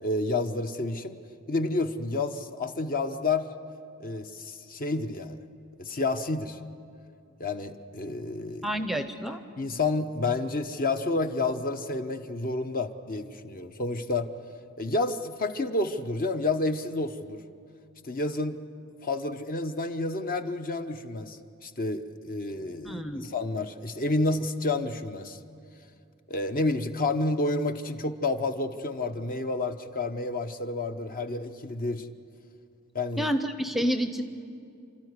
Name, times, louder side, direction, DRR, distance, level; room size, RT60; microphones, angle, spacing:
voice 1, 0.0-1.2 1.5-3.5 4.0-5.4 5.8-6.6 7.4-8.7 9.6-14.3 14.8-17.4 18.0-18.6 19.0-25.4 26.3-32.1 32.9-33.3, left 2 dB, 40° left, 8 dB, 0.9 m, -30 dB
voice 2, 8.6-9.4 22.8-23.3 33.2-34.2, equal, ahead, 9 dB, 0.7 m, -29 dB
29.5 x 13.0 x 9.6 m, 2.5 s
head